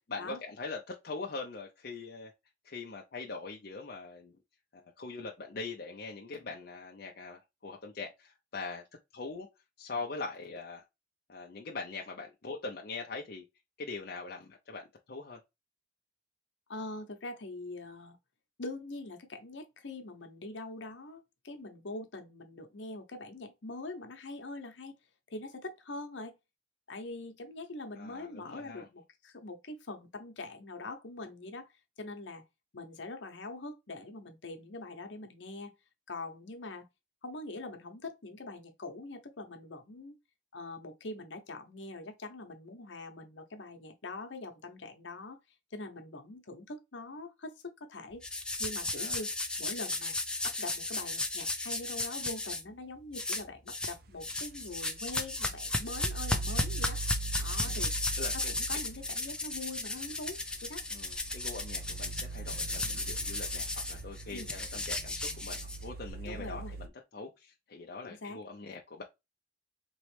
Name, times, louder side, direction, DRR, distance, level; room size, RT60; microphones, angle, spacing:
voice 1, 0.1-2.3 2.6-4.3 4.7-8.8 9.1-9.5 9.8-10.8 11.3-13.5 13.8-15.4 28.0-28.9 49.0-49.2 57.6-57.8 58.2-58.3 60.9-69.0, left 3 dB, 55° left, 0.6 m, -42 dB
voice 2, 16.7-18.2 18.6-25.0 25.3-26.3 26.9-31.7 32.0-32.4 32.7-35.7 36.1-36.9 37.2-40.2 40.5-45.4 45.7-48.2 48.6-49.3 49.6-50.1 50.4-57.0 57.3-57.9 58.3-60.8 64.3-64.5 66.2-66.7 68.0-68.4, left 2 dB, 75° left, 0.9 m, -43 dB
sound 1, 48.2-52.6 53.1-54.0 54.2-66.1, left 2 dB, 5° left, 0.4 m, -35 dB
sound 2, 54.0-66.9, right 3 dB, 50° right, 0.5 m, -42 dB
4.0 x 3.1 x 3.2 m
head